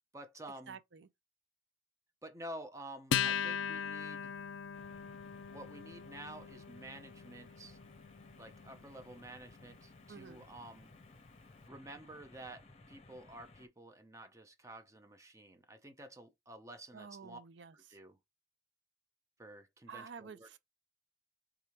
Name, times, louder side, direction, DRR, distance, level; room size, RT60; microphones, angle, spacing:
voice 1, 0.1-0.8 2.2-4.3 5.5-7.8 8.4-10.9 11.7-17.4 17.7-18.2 19.4-20.6, right 1 dB, 15° right, 0.7 m, -50 dB
voice 2, 0.7-1.1 10.1-10.4 16.9-18.0 19.9-20.6, right 6 dB, 75° right, 0.5 m, -50 dB
Acoustic guitar, 3.1-9.9, left 8 dB, 85° left, 0.3 m, -39 dB
sound 1, 4.7-13.7, left 2 dB, 35° left, 0.8 m, -59 dB
3.6 x 3.4 x 4.3 m
head